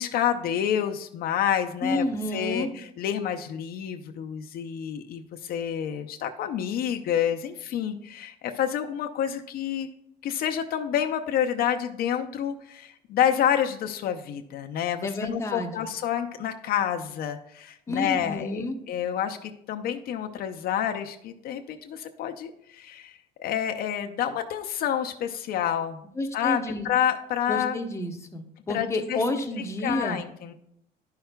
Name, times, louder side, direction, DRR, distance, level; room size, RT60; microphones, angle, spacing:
voice 1, 0.0-2.0 2.3-9.9 10.2-26.0 26.3-27.8 28.7-29.2 29.8-30.5, left 9 dB, 65° left, 5 dB, 0.5 m, -28 dB
voice 2, 1.8-2.7 15.0-15.9 17.9-18.7 26.2-26.9 27.5-30.2, left 1 dB, 15° left, 4 dB, 0.8 m, -30 dB
11.0 x 5.7 x 2.2 m, 0.76 s
cardioid pair, 110°, 17 cm